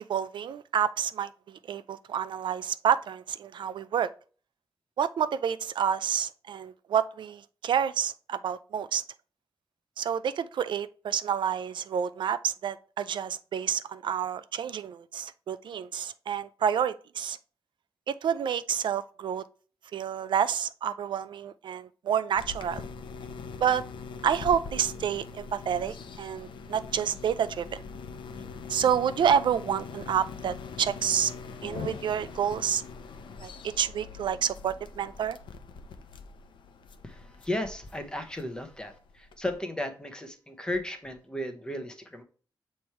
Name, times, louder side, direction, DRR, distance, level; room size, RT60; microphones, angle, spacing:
voice 1, 0.1-4.1 5.0-9.0 10.0-17.4 18.1-19.4 19.9-22.8 23.6-23.8 24.2-27.8 28.7-31.3 31.6-32.8 33.4-35.4, right 8 dB, 75° right, 0.4 m, -29 dB
sound 1, 22.4-39.6, left 5 dB, 85° left, 0.7 m, -42 dB
voice 2, 37.0-42.2, left 1 dB, 10° left, 0.9 m, -35 dB
7.0 x 3.3 x 4.4 m
wide cardioid pair, 135°, 8 cm